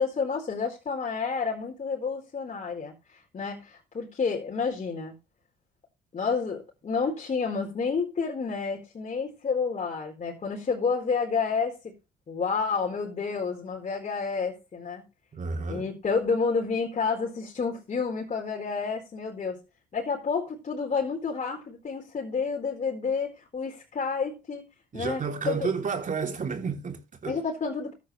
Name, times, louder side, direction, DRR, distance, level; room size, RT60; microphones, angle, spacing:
voice 1, 0.0-5.1 6.1-11.9 12.3-15.0 15.7-19.6 19.9-24.6 24.9-25.7 27.3-27.9, left 5 dB, 40° left, 4.2 m, -30 dB
voice 2, 15.3-15.9 24.9-27.4, right 5 dB, 45° right, 3.1 m, -31 dB
14.0 x 10.5 x 3.2 m
supercardioid pair, 85°, 19 cm